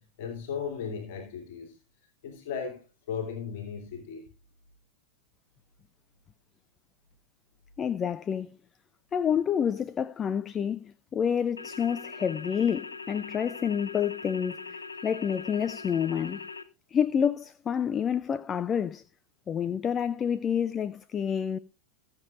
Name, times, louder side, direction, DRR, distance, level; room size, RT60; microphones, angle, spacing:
voice 1, 0.0-1.8 2.2-4.3, left 6 dB, 50° left, 2.7 m, -36 dB
voice 2, 7.8-8.5 9.1-16.4 16.9-19.0 19.5-21.6, left 8 dB, 25° left, 0.5 m, -28 dB
sound 1, 11.6-16.6, left 4 dB, 80° left, 1.0 m, -41 dB
21.5 x 7.2 x 2.5 m
figure-of-eight pair, 90°, 0 cm